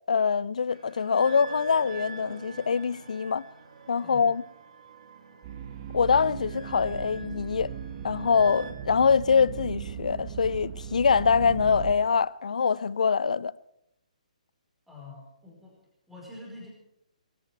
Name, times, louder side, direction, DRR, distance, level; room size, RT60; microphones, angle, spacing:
voice 1, 0.1-3.5 3.9-4.4 5.9-7.7 8.0-13.5, left 6 dB, 70° left, 0.6 m, -24 dB
sound 1, 0.7-8.7, right 5 dB, 65° right, 2.5 m, -46 dB
sound 2, 5.4-11.9, right 8 dB, 35° right, 1.3 m, -38 dB
voice 2, 14.9-15.8 16.1-16.7, left 2 dB, 5° right, 5.0 m, -45 dB
22.0 x 13.5 x 4.7 m
figure-of-eight pair, 130°, 4 cm